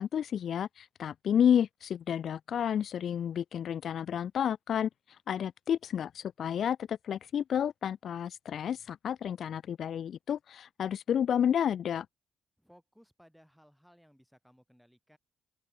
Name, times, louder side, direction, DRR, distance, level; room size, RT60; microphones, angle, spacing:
voice 1, 0.0-4.9 5.3-12.1, left 9 dB, 60° left, 0.5 m, -30 dB
voice 2, 12.6-15.2, equal, ahead, 7.6 m, -61 dB
open air
cardioid pair, 90°, 0 cm